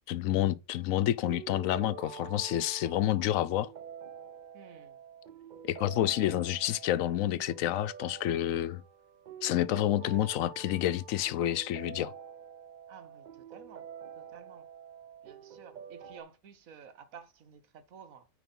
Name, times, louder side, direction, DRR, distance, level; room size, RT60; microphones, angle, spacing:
voice 1, 0.1-3.7 5.7-8.8 9.4-12.1, left 13 dB, 80° left, 1.0 m, -29 dB
sound 1, 0.7-16.2, right 7 dB, 50° right, 0.5 m, -47 dB
voice 2, 4.5-5.0 12.9-13.9 14.2-14.7 15.2-18.3, right 7 dB, 85° right, 1.4 m, -52 dB
9.3 x 3.7 x 5.3 m
omnidirectional pair, 1.4 m